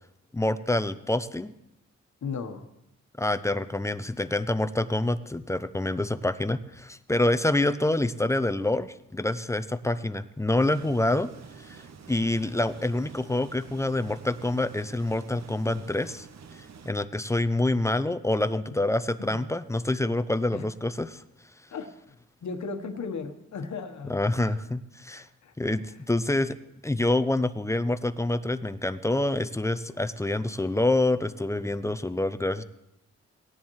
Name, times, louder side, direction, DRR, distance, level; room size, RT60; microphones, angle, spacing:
voice 1, 0.3-1.5 3.2-11.3 11.6-16.3 16.5-21.2 24.1-25.3 25.6-26.6 26.8-32.6, left 2 dB, 10° left, 13 dB, 0.5 m, -27 dB
voice 2, 2.2-2.7 19.2-19.5 20.5-20.7 21.7-24.6 25.1-25.5, left 5 dB, 75° left, 6 dB, 1.2 m, -37 dB
sound 1, 10.6-16.9, right 6 dB, 65° right, 0.8 m, -48 dB
17.5 x 10.0 x 3.1 m, 0.84 s
cardioid pair, 70°, 29 cm